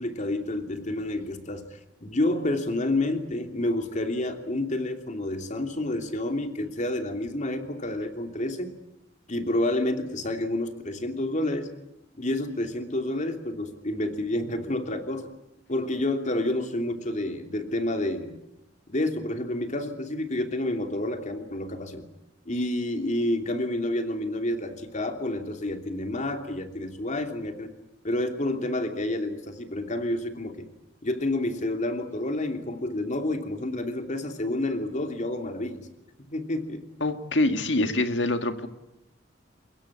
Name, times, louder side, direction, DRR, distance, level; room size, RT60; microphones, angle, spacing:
voice 1, 0.0-8.7 9.3-11.7 12.1-15.3 15.7-18.4 18.9-22.0 22.5-27.7 28.0-30.6 31.0-35.8 36.3-36.8, left 1 dB, 40° left, 6 dB, 2.9 m, -29 dB
voice 2, 37.0-38.7, left 2 dB, 70° left, 8 dB, 2.0 m, -25 dB
24.0 x 22.0 x 8.7 m, 0.89 s
head